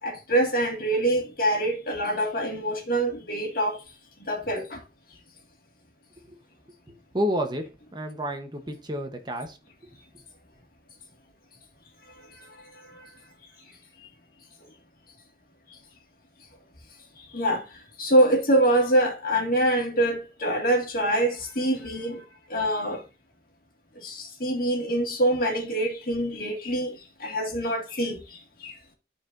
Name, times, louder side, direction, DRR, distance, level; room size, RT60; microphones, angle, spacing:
voice 1, 0.0-3.8 4.2-4.8 12.9-13.0 17.3-17.6 18.0-22.2 22.5-23.0 24.0-28.7, right 1 dB, 55° left, 2.0 m, -25 dB
voice 2, 7.1-9.6, equal, 25° right, 0.9 m, -30 dB
12.5 x 4.5 x 2.5 m
head